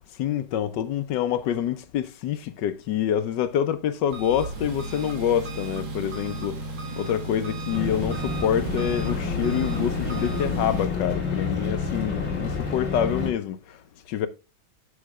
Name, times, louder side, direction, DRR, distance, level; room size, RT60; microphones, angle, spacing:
voice 1, 0.1-14.3, left 10 dB, 70° left, 1.2 m, -27 dB
Engine, 4.1-10.8, right 2 dB, 90° right, 2.6 m, -34 dB
sound 1, 7.7-13.3, left 4 dB, 35° left, 2.3 m, -29 dB
9.4 x 7.3 x 2.3 m
omnidirectional pair, 2.1 m